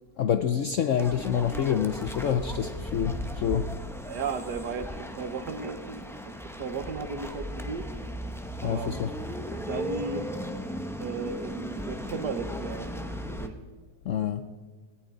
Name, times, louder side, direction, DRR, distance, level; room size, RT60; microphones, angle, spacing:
voice 1, 0.2-3.7 8.6-9.1 14.1-14.4, left 8 dB, 65° left, 9 dB, 0.7 m, -27 dB
sound 1, 1.0-13.5, equal, 5° left, 0.5 m, -36 dB
voice 2, 4.0-7.9 8.6-9.0 9.5-10.3 11.0-13.6, right 5 dB, 70° right, 9 dB, 1.7 m, -35 dB
18.0 x 18.0 x 3.9 m, 1.5 s
omnidirectional pair, 1.9 m